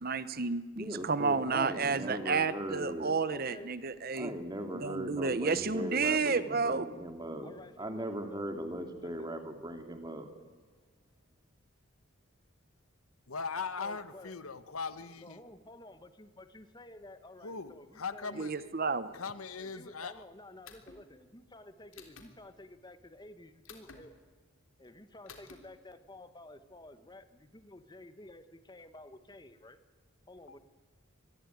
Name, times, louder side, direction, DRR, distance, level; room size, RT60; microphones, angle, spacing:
voice 1, 0.0-4.3 4.7-6.9 18.4-19.2, right 4 dB, 45° right, 14 dB, 0.9 m, -31 dB
voice 2, 0.8-3.1 4.1-7.5 7.8-10.3, right 1 dB, 20° right, 6 dB, 2.7 m, -38 dB
voice 3, 3.3-3.8 5.2-6.1 7.4-8.4 9.0-9.3 13.8-14.4 15.2-18.5 19.6-24.1 24.8-29.8 30.3-30.6, left 1 dB, 20° left, 11 dB, 1.3 m, -52 dB
voice 4, 13.3-15.4 17.4-18.7 19.1-20.3 30.5-30.6, left 5 dB, 85° left, 13 dB, 1.4 m, -40 dB
sound 1, 20.6-21.0 21.9-22.3 23.6-24.0 25.3-25.6, left 5 dB, 65° left, 3.6 m, -51 dB
25.5 x 20.5 x 9.3 m, 1.4 s
head